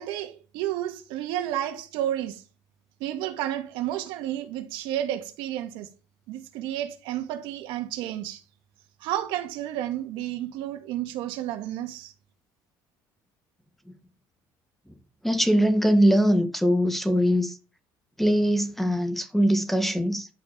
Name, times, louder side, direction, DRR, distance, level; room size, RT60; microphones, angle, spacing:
voice 1, 0.0-2.4 3.0-5.9 6.3-8.4 9.0-12.1, right 12 dB, 80° right, 2.2 m, -31 dB
voice 2, 15.2-17.6 18.2-20.3, equal, ahead, 1.9 m, -22 dB
12.0 x 5.8 x 7.1 m
cardioid pair, 125°, 9 cm